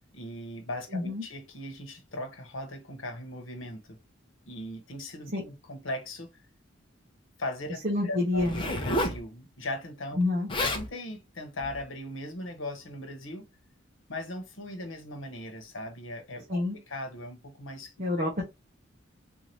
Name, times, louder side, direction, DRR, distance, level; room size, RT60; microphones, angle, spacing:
voice 1, 0.1-4.0 4.5-6.3 7.4-10.2 10.6-13.5 14.1-18.3, left 1 dB, 80° left, 1.0 m, -39 dB
voice 2, 0.9-1.2 5.3-5.4 7.8-8.6 10.2-10.5 16.5-16.8 18.0-18.4, left 2 dB, 45° right, 1.0 m, -27 dB
Zipper (clothing), 8.3-9.2 10.2-10.3 10.5-10.9 11.6-11.8, left 1 dB, 25° left, 0.8 m, -30 dB
3.6 x 2.8 x 3.0 m
head